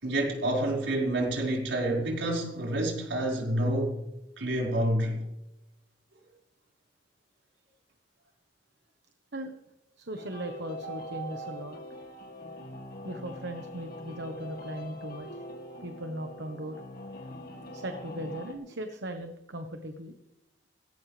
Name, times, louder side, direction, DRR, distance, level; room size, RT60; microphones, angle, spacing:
voice 1, 0.0-4.0 4.4-5.2, right 1 dB, 85° right, 5.3 m, -28 dB
voice 2, 10.0-11.8 13.0-15.4 15.8-16.8 17.7-20.1, right 1 dB, 65° right, 1.2 m, -38 dB
sound 1, 10.2-18.5, equal, 55° left, 2.5 m, -43 dB
18.5 x 16.5 x 3.4 m
head